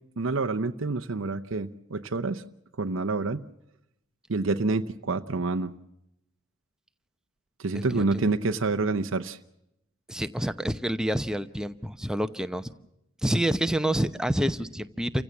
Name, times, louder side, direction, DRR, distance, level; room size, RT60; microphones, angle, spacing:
voice 1, 0.2-2.4 2.8-3.4 4.3-5.7 7.6-9.4, right 3 dB, 65° right, 8 dB, 0.8 m, -27 dB
voice 2, 7.7-8.3 10.1-12.7 13.2-15.2, equal, 5° right, 10 dB, 0.8 m, -28 dB
29.0 x 16.0 x 7.1 m, 0.83 s
head